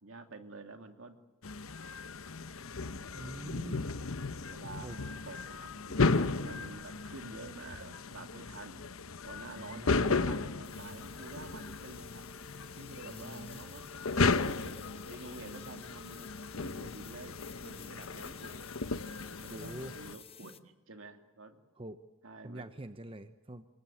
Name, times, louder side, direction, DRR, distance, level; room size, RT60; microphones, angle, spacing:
voice 1, 0.0-1.2 4.5-8.8 9.2-12.2 12.8-14.3 14.6-18.8 19.4-21.6 22.2-22.6, right 3 dB, 65° right, 6 dB, 2.5 m, -49 dB
sound 1, 1.4-20.1, left 3 dB, 75° left, 1.0 m, -35 dB
voice 2, 3.1-3.9 4.8-5.0 9.5-10.5 13.1-13.6 19.5-20.0 21.8-22.0 22.4-23.7, right 1 dB, 25° right, 9 dB, 0.9 m, -45 dB
sound 2, 10.6-20.6, left 5 dB, 25° left, 1.0 m, -53 dB
26.5 x 22.0 x 9.2 m, 1.1 s
head